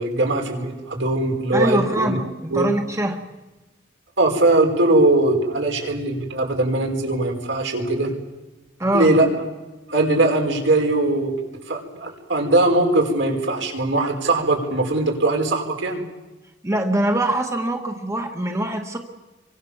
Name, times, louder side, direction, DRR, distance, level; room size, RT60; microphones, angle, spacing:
voice 1, 0.0-2.2 2.5-2.7 4.2-8.1 8.9-9.4 9.9-11.3 11.7-16.0, right 2 dB, 75° right, 2 dB, 5.3 m, -20 dB
voice 2, 1.5-3.2 8.8-9.1 16.6-19.0, right 1 dB, 15° right, 4 dB, 1.6 m, -23 dB
28.5 x 24.0 x 7.3 m, 1.1 s
head